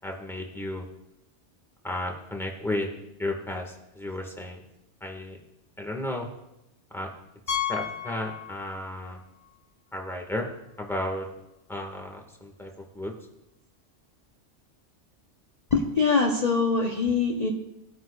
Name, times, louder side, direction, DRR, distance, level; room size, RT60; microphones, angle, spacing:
voice 1, 0.0-0.9 1.8-4.6 5.0-5.4 5.8-6.3 6.9-7.1 7.5-9.2 9.9-11.3 11.7-13.1, left 1 dB, ahead, 1 dB, 1.6 m, -33 dB
Piano, 7.5-9.1 9.3-9.5 10.1-10.2 10.4-10.5 12.6-12.7, left 9 dB, 70° left, 2.2 m, -33 dB
voice 2, 15.7-17.5, left 4 dB, 35° left, -1 dB, 1.0 m, -23 dB
18.5 x 9.1 x 2.4 m, 0.89 s
omnidirectional pair, 1.2 m